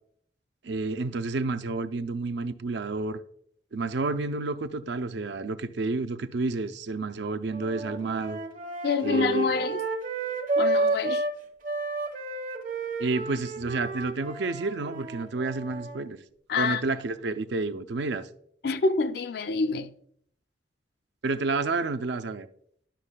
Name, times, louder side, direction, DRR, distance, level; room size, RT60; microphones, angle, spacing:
voice 1, 0.6-3.2 3.7-8.4 9.0-9.6 13.0-16.2 16.6-18.3 21.2-22.5, right 3 dB, 70° right, 0.5 m, -30 dB
sound 1, 7.5-11.3 11.6-16.0, right 2 dB, 45° right, 1.1 m, -31 dB
voice 2, 8.8-9.8 10.6-11.2 16.5-16.8 18.6-19.9, left 4 dB, 60° left, 0.4 m, -27 dB
11.5 x 6.3 x 2.2 m
head